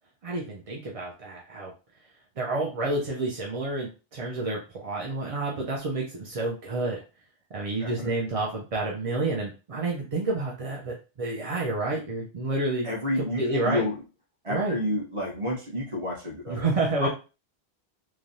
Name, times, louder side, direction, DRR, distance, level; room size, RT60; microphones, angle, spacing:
voice 1, 0.2-1.7 2.4-7.0 7.5-12.9 13.4-13.8 14.5-14.8 16.5-17.1, right 2 dB, 45° right, -2 dB, 0.5 m, -29 dB
voice 2, 7.8-8.3 12.8-14.0 14.4-17.1, left 1 dB, 30° right, -2 dB, 1.0 m, -30 dB
3.2 x 2.3 x 2.6 m, 0.32 s
omnidirectional pair, 1.1 m